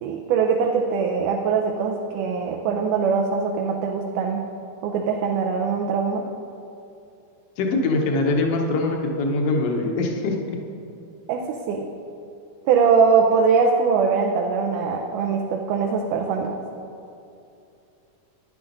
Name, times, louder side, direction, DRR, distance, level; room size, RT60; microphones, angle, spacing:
voice 1, 0.0-4.4 4.8-6.2 11.3-11.9 12.7-16.5, right 5 dB, 80° right, 1 dB, 2.1 m, -22 dB
voice 2, 7.6-10.6, left 2 dB, 65° left, 1 dB, 1.6 m, -23 dB
12.0 x 10.5 x 3.9 m, 2.7 s
omnidirectional pair, 3.9 m